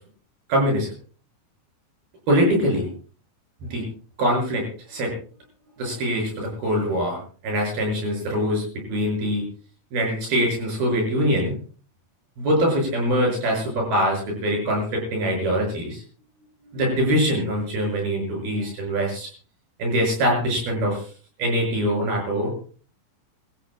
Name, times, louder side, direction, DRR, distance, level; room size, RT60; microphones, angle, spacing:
voice 1, 0.5-0.9 2.3-2.9 3.6-3.9 4.2-5.1 5.8-8.6 8.9-9.4 9.9-11.5 12.4-16.0 16.7-19.3 19.8-21.0 21.4-22.5, equal, 80° right, 0 dB, 8.2 m, -23 dB
26.5 x 17.0 x 2.3 m, 0.40 s
omnidirectional pair, 4.3 m